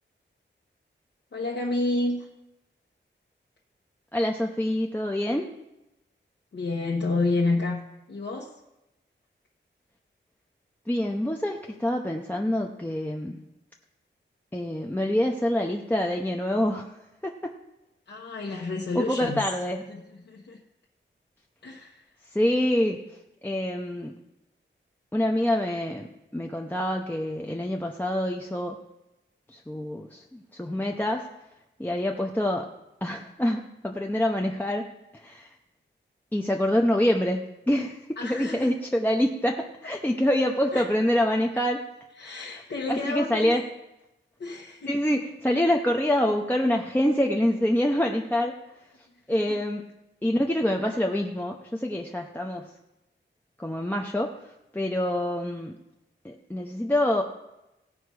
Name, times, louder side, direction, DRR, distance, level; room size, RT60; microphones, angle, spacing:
voice 1, 1.3-2.3 6.5-8.5 18.1-19.4 19.9-20.6 21.6-22.0 38.2-38.7 40.7-40.8 42.2-43.5 44.4-45.0 49.5-49.6, left 2 dB, 60° left, -3 dB, 1.3 m, -30 dB
voice 2, 4.1-5.5 10.9-13.4 14.5-16.9 17.2-17.5 18.5-18.6 18.9-19.8 22.3-23.0 23.4-24.2 25.1-28.8 29.5-31.3 31.8-32.7 33.0-34.9 35.1-35.5 36.3-37.4 37.7-41.8 42.2-42.4 42.9-43.6 44.9-48.6 49.3-49.9 50.2-52.7 53.6-55.8 56.2-57.2, left 1 dB, 10° left, 1 dB, 0.7 m, -26 dB
17.0 x 5.7 x 4.8 m, 0.93 s
wide cardioid pair, 145°, 20 cm